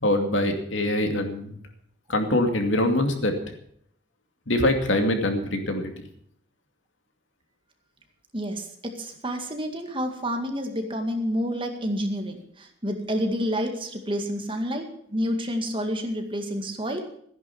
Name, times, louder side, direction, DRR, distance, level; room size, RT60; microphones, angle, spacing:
voice 1, 0.0-1.6 2.1-3.4 4.5-6.0, left 1 dB, 70° left, 5 dB, 2.5 m, -24 dB
voice 2, 8.3-17.0, equal, 25° right, 4 dB, 2.1 m, -29 dB
15.0 x 10.5 x 7.1 m, 0.66 s
head